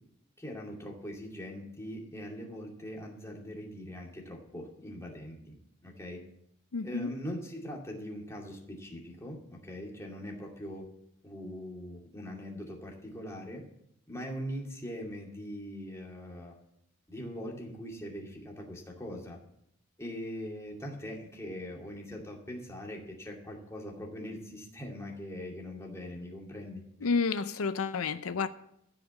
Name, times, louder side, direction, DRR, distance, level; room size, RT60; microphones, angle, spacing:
voice 1, 0.4-5.5 5.8-6.2 6.8-10.9 11.2-13.6 14.1-16.5 17.1-19.4 20.0-26.8, equal, 15° left, -1 dB, 2.4 m, -41 dB
voice 2, 6.7-7.1 27.0-28.5, left 4 dB, 85° left, 11 dB, 0.6 m, -30 dB
14.0 x 5.1 x 8.4 m, 0.75 s
head